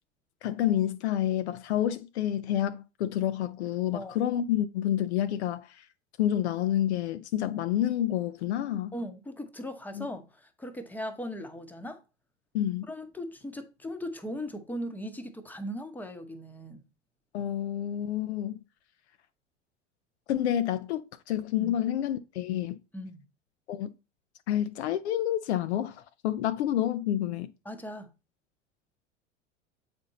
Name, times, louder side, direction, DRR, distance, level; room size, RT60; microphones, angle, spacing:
voice 1, 0.4-5.8 6.2-8.9 9.9-10.1 12.5-12.9 17.3-18.6 20.3-22.8 23.7-23.9 24.5-27.5, left 11 dB, 60° left, 0.6 m, -29 dB
voice 2, 8.9-12.0 12.9-16.8 21.6-21.7 22.9-23.2 27.6-28.1, equal, 5° left, 0.9 m, -38 dB
7.9 x 4.4 x 3.9 m
figure-of-eight pair, 80°, 37 cm